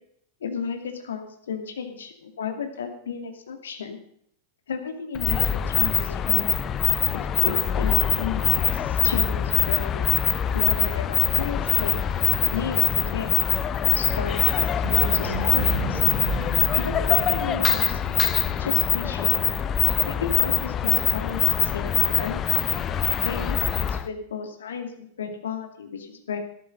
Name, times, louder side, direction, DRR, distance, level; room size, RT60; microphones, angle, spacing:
voice 1, 0.4-4.0 4.7-6.5 7.1-10.0 10.5-11.9 12.5-13.5 14.0-16.0 16.8-18.0 18.6-19.4 20.1-22.4 23.2-26.4, left 6 dB, 65° left, 6 dB, 2.4 m, -33 dB
sound 1, 5.1-24.1, left 9 dB, 25° left, 0.7 m, -23 dB
sound 2, 14.8-21.7, right 9 dB, 55° right, 3.5 m, -37 dB
13.5 x 12.5 x 5.3 m, 0.66 s
figure-of-eight pair, 90°, 0 cm